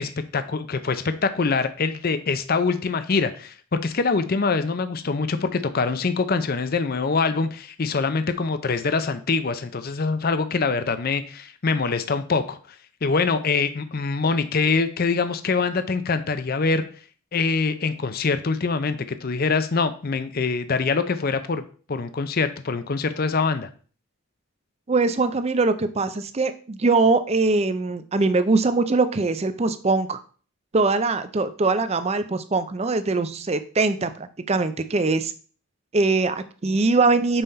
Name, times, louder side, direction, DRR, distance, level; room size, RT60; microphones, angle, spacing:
voice 1, 0.0-12.6 13.0-16.8 17.3-21.6 21.9-23.7, left 4 dB, 40° left, 11 dB, 0.5 m, -24 dB
voice 2, 24.9-30.2 30.7-35.3 35.9-37.4, right 3 dB, 30° right, 11 dB, 0.4 m, -22 dB
5.5 x 4.3 x 5.4 m, 0.41 s
head